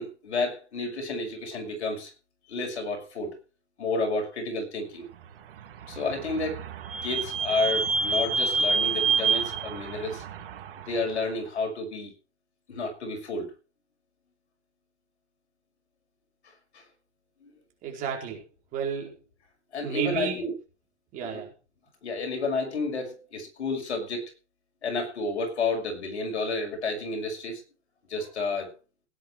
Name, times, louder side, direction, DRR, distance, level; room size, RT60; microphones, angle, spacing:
voice 1, 0.0-2.1 2.5-3.4 3.8-5.1 5.9-6.6 7.0-10.2 10.8-12.1 12.7-13.5 16.7-16.8 17.4-17.5 19.7-20.5 21.2-21.4 22.0-24.3 24.8-27.6 28.1-28.7, left 3 dB, 70° left, 4 dB, 6.3 m, -31 dB
Vehicle / Squeak, 5.5-11.1, right 4 dB, 55° right, 3.3 m, -28 dB
voice 2, 17.8-18.4 18.7-19.2 19.8-20.4 21.1-21.5, right 7 dB, 20° right, 1 dB, 4.6 m, -31 dB
18.0 x 10.0 x 4.7 m, 0.33 s
hypercardioid pair, 155°, 35 cm